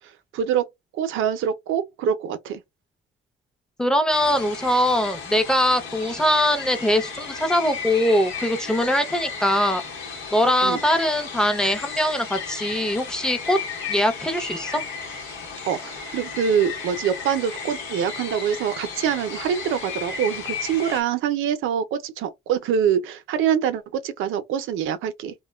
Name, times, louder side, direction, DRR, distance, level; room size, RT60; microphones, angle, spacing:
voice 1, 0.3-0.7 0.9-2.6 10.6-10.8 15.6-25.3, right 8 dB, 85° right, 0.5 m, -25 dB
voice 2, 3.8-9.8 10.3-13.6 13.9-14.8, equal, 5° left, 0.6 m, -22 dB
sound 1, 4.1-21.0, left 5 dB, 85° left, 1.1 m, -34 dB
2.7 x 2.2 x 2.2 m
cardioid pair, 90°, 20 cm